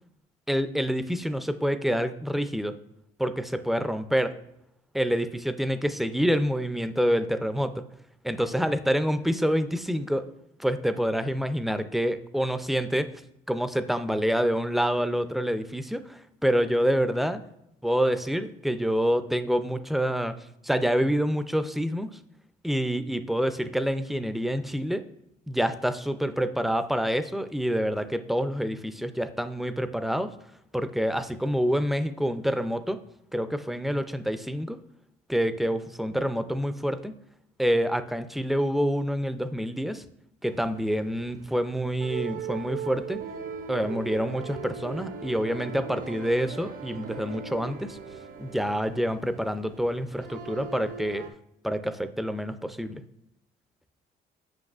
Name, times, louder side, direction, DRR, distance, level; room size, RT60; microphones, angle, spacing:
voice 1, 0.5-2.7 3.2-4.3 4.9-7.8 8.2-10.3 10.6-13.1 13.5-17.4 17.8-20.4 20.6-22.2 22.6-25.1 25.5-30.3 30.7-33.0 33.3-34.8 35.3-37.1 37.6-40.0 40.4-43.2 43.7-48.0 48.4-51.3 51.6-53.0, equal, ahead, 11 dB, 0.3 m, -27 dB
sound 1, 40.5-51.3, right 6 dB, 55° right, 0.5 m, -39 dB
7.8 x 5.7 x 2.4 m, 0.79 s
cardioid pair, 110°, 17 cm